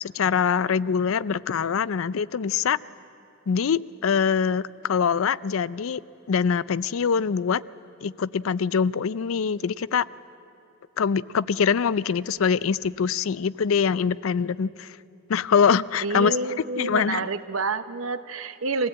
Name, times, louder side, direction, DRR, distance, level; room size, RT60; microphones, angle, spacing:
voice 1, 0.0-2.8 3.5-6.0 6.3-7.6 8.0-10.0 11.0-14.9 15.3-16.3 16.8-17.2, left 6 dB, 80° left, 19 dB, 0.4 m, -24 dB
voice 2, 16.0-18.9, right 3 dB, 80° right, 12 dB, 0.9 m, -28 dB
23.5 x 16.5 x 8.8 m, 3.0 s
head